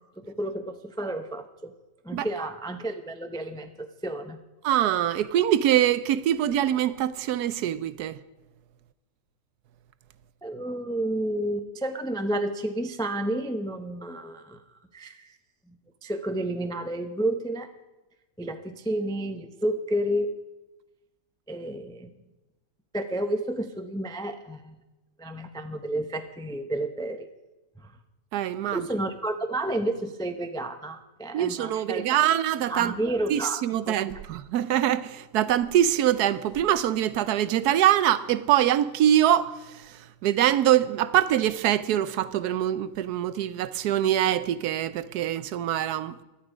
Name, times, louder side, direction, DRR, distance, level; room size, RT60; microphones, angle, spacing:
voice 1, 0.2-1.7 2.0-4.4 10.4-14.6 14.9-15.3 15.7-15.8 16.0-17.7 18.4-20.3 21.5-22.1 22.9-24.8 25.2-27.3 27.8-27.9 28.7-32.1 32.7-34.0, right 1 dB, 5° left, 0.3 m, -31 dB
voice 2, 4.6-8.2 28.3-28.8 31.3-32.9 33.3-40.0 40.2-46.2, right 11 dB, 75° right, 1.1 m, -24 dB
17.0 x 11.5 x 5.0 m
omnidirectional pair, 1.8 m